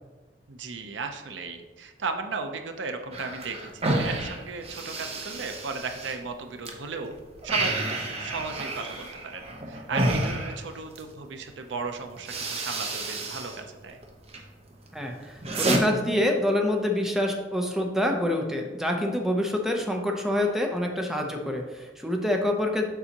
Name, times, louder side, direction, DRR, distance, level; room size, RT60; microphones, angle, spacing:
voice 1, 0.5-7.2 7.4-14.0, right 4 dB, 80° right, 6 dB, 0.6 m, -36 dB
sound 1, 3.1-6.7 7.1-11.1 11.8-11.9 12.2-13.6 13.9-14.4 14.9-15.8, right 2 dB, 35° right, 0.8 m, -30 dB
voice 2, 14.9-22.8, left 1 dB, ahead, 2 dB, 0.6 m, -26 dB
6.9 x 5.5 x 2.9 m, 1.2 s
head